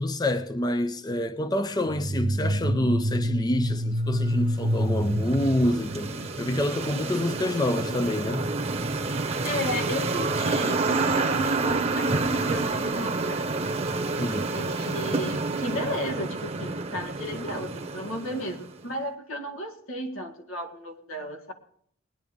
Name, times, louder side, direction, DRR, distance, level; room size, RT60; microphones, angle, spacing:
voice 1, 0.0-8.5 14.2-14.5, left 1 dB, 20° left, 0.5 m, -27 dB
sound 1, 1.9-6.7, equal, 70° right, 0.7 m, -27 dB
sound 2, 4.3-18.8, right 3 dB, 30° right, 0.9 m, -29 dB
voice 2, 9.4-13.6 14.5-21.5, equal, 80° left, 2.0 m, -34 dB
20.0 x 10.5 x 3.6 m
head